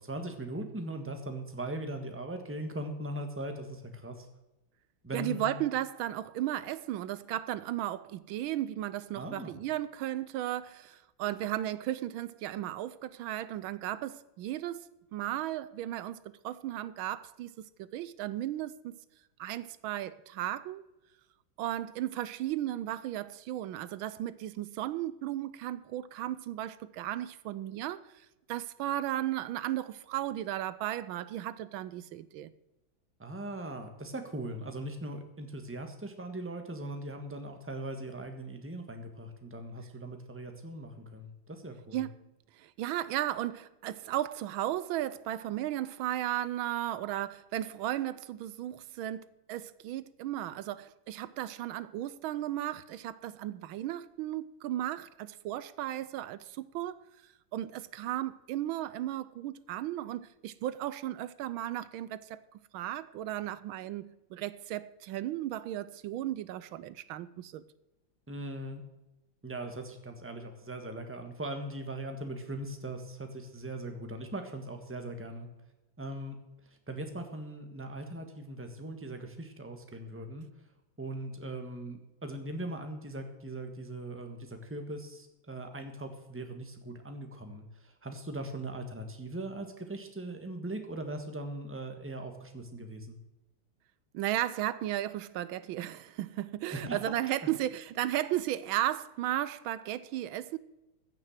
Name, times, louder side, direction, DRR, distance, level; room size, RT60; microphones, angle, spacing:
voice 1, 0.0-4.3 5.0-5.6 9.2-9.5 33.2-42.1 68.3-68.8 69.4-75.5 76.0-76.4 76.6-80.5 81.0-93.2 96.7-97.0, right 1 dB, 5° right, 1.3 m, -40 dB
voice 2, 5.1-17.5 17.8-18.9 19.4-20.8 21.6-32.5 41.9-42.1 42.5-57.0 57.5-62.4 62.7-67.6 94.1-100.6, right 13 dB, 80° right, 1.4 m, -35 dB
15.5 x 6.6 x 7.3 m
omnidirectional pair, 2.2 m